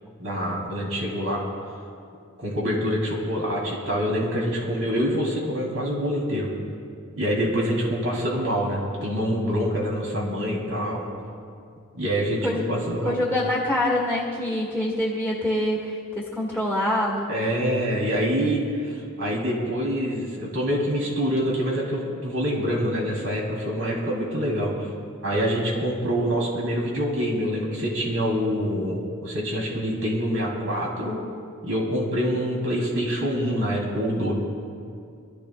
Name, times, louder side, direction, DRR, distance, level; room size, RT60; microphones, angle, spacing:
voice 1, 0.2-1.4 2.4-6.5 7.1-11.0 11.9-13.2 17.3-24.9 25.2-31.2 31.6-34.3, equal, 70° right, -3 dB, 3.5 m, -26 dB
voice 2, 13.0-17.3, left 1 dB, 10° right, -5 dB, 1.8 m, -25 dB
27.0 x 13.5 x 2.5 m, 2.4 s
head